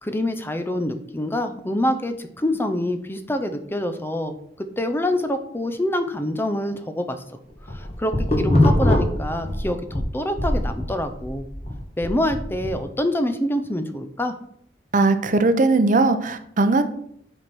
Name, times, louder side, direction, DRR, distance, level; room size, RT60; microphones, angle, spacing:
voice 1, 0.0-7.2 7.7-11.4 12.0-14.3, left 1 dB, 15° left, 8 dB, 0.6 m, -26 dB
sound 1, 7.5-10.0 10.4-12.8, left 1 dB, 35° left, 1.7 m, -21 dB
voice 2, 14.9-16.8, right 3 dB, 45° right, 10 dB, 0.7 m, -19 dB
7.9 x 4.3 x 6.1 m, 0.68 s
head